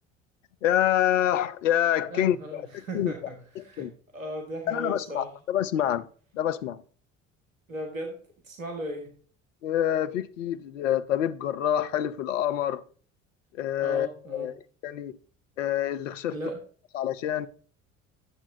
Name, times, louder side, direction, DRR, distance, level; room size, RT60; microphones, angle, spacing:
voice 1, 0.6-2.6 2.9-3.1 3.6-3.9 4.7-6.1 6.3-6.8 9.6-12.8 13.6-14.5 14.8-15.1 15.6-16.4 16.9-17.5, left 11 dB, 70° left, 0.6 m, -27 dB
voice 2, 2.1-5.3 7.7-8.2 8.4-9.1 13.8-14.5 16.3-16.6, right 1 dB, 85° right, 1.2 m, -37 dB
11.0 x 7.1 x 2.7 m
figure-of-eight pair, 55°, 39 cm